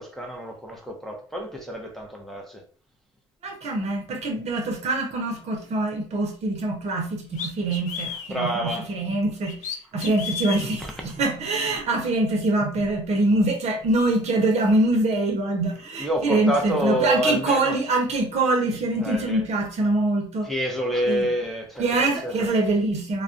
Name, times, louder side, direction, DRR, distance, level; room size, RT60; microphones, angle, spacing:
voice 1, 0.0-2.6 8.3-8.9 16.0-17.7 19.0-19.4 20.5-21.9 22.2-22.5, equal, ahead, 0.6 m, -27 dB
voice 2, 3.4-9.6 9.9-20.5 21.1-21.3 21.8-23.2, right 2 dB, 50° right, 0.7 m, -24 dB
sound 1, 6.6-6.7 7.4-8.3 9.5-10.7, left 7 dB, 60° left, 0.5 m, -32 dB
2.3 x 2.1 x 2.5 m
hypercardioid pair, 70°, 14 cm